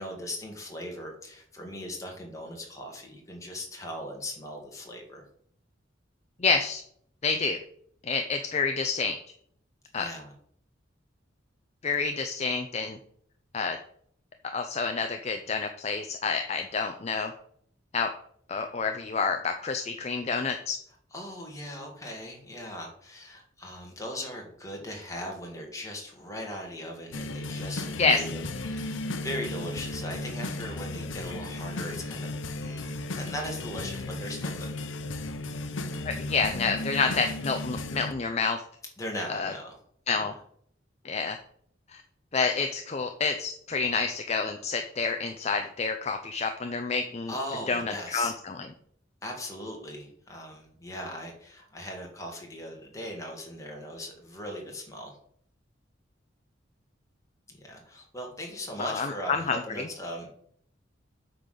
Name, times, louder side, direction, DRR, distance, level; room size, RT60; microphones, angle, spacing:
voice 1, 0.0-5.2 10.0-10.3 21.1-32.9 33.1-34.7 39.0-39.8 40.2-40.3 47.3-48.3 49.2-55.1 57.6-60.4, left 1 dB, 15° left, 0 dB, 1.9 m, -39 dB
voice 2, 6.4-6.8 7.2-7.6 8.0-9.2 9.9-10.1 11.8-13.0 13.5-13.8 14.5-17.3 17.9-18.1 18.5-20.8 28.0-28.2 36.0-38.6 39.3-39.5 40.1-40.3 41.0-41.4 41.9-42.0 42.3-47.3 47.7-47.8 48.1-48.5 58.8-59.6, left 4 dB, 35° left, 6 dB, 0.5 m, -28 dB
sound 1, 27.1-38.1, left 2 dB, 85° left, 0.8 m, -35 dB
8.5 x 3.9 x 6.6 m, 0.64 s
head